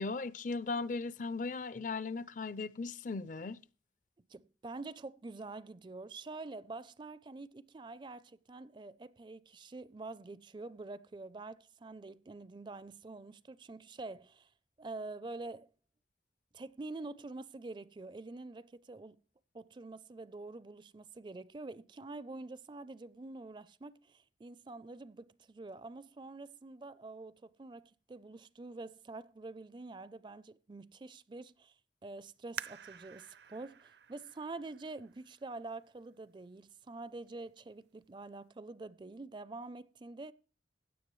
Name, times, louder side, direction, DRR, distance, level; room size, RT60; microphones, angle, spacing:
voice 1, 0.0-3.6, left 3 dB, 45° left, 0.5 m, -37 dB
voice 2, 4.3-14.5 14.8-15.7 16.5-19.2 19.5-31.7 32.0-40.3, right 3 dB, 25° right, 0.4 m, -46 dB
sound 1, 32.6-35.9 36.5-36.6 37.3-37.6 38.0-38.1, right 8 dB, 70° right, 0.6 m, -49 dB
16.5 x 9.8 x 3.1 m
head